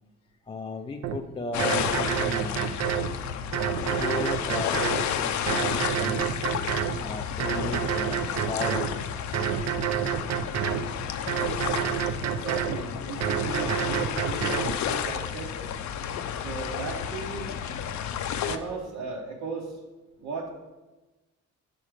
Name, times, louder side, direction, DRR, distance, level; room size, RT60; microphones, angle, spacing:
voice 1, 0.4-2.8 3.9-6.5 7.0-9.1 16.1-16.3, left 3 dB, 20° left, 4 dB, 0.3 m, -36 dB
sound 1, 1.0-1.2 1.6-3.1 3.5-5.1 5.5-7.0 7.4-8.9 9.3-10.9 11.3-12.8 13.2-14.7, right 10 dB, 60° right, 0.5 m, -28 dB
sound 2, 1.5-18.6, left 8 dB, 70° left, 0.5 m, -31 dB
voice 2, 12.2-15.6 16.4-17.5 18.4-19.8 20.2-20.5, right 4 dB, 85° right, -3 dB, 1.0 m, -36 dB
6.2 x 4.3 x 4.9 m, 1.2 s
cardioid pair, 90°, 30 cm